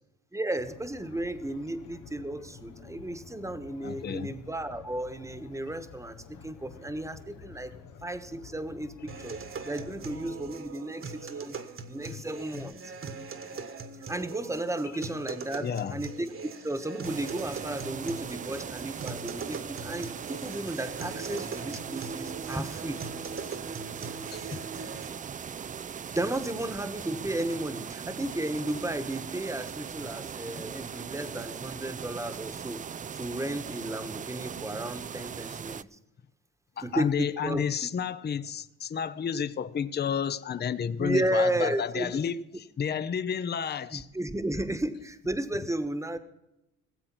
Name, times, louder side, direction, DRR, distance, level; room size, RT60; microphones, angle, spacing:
voice 1, 0.3-6.2 6.4-7.7 8.0-9.4 9.7-11.6 11.9-12.9 14.1-16.3 16.6-23.0 26.1-32.8 33.1-36.0 36.8-37.6 41.0-42.2 43.9-46.2, right 1 dB, 10° right, 1.2 m, -33 dB
sound 1, 0.6-10.6, left 5 dB, 85° left, 1.5 m, -50 dB
voice 2, 3.8-4.3 12.1-12.2 12.5-12.7 13.5-13.6 15.6-16.0 24.3-24.7 36.8-44.1, left 7 dB, 35° left, 0.7 m, -31 dB
sound 2, 9.1-25.1, right 5 dB, 45° right, 1.5 m, -41 dB
sound 3, 17.0-35.8, right 7 dB, 25° right, 0.4 m, -39 dB
18.0 x 7.7 x 6.1 m
cardioid pair, 90°, 30 cm